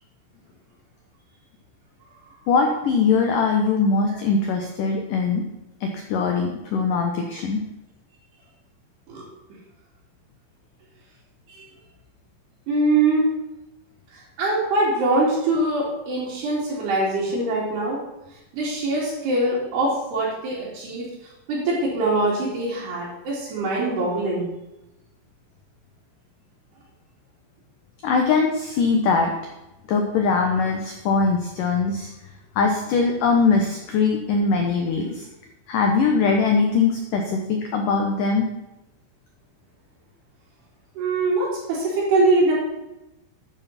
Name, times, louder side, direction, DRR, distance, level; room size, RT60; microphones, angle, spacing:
voice 1, 2.5-5.4 5.8-7.6 28.0-29.3 29.9-32.1 32.6-35.2 35.7-38.5, left 4 dB, 75° left, 2 dB, 2.0 m, -21 dB
voice 2, 12.7-13.3 14.4-18.0 18.5-21.1 21.5-24.5 41.0-42.5, right 2 dB, 60° right, -8 dB, 4.7 m, -23 dB
12.5 x 10.0 x 4.3 m, 0.95 s
omnidirectional pair, 5.4 m